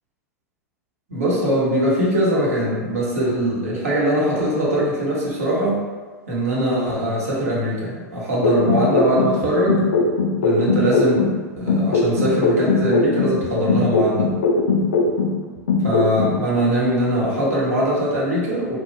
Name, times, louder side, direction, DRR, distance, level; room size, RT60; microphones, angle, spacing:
voice 1, 1.1-5.8 6.3-9.8 10.4-11.3 11.6-14.3 15.8-18.8, right 1 dB, 65° right, -6 dB, 1.0 m, -21 dB
sound 1, 8.4-11.4 11.7-15.4 15.7-16.4, left 3 dB, 65° left, 0.4 m, -19 dB
2.9 x 2.3 x 2.7 m, 1.3 s
figure-of-eight pair, 95°, 9 cm